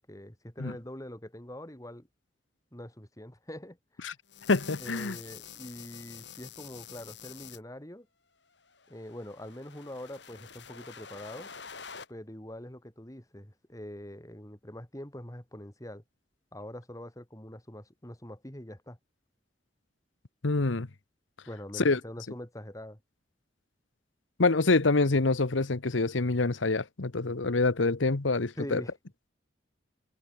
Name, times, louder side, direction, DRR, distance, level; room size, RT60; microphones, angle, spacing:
voice 1, 0.0-2.1 2.7-4.0 4.8-8.1 8.9-11.5 12.1-16.0 16.5-19.0 21.5-23.0 28.6-28.9, left 1 dB, 20° left, 3.4 m, -44 dB
sound 1, 4.3-7.6 8.7-12.1, left 7 dB, 65° left, 4.2 m, -47 dB
voice 2, 4.5-5.2 20.4-20.9 21.8-22.0 24.4-28.8, left 3 dB, 90° left, 1.1 m, -26 dB
head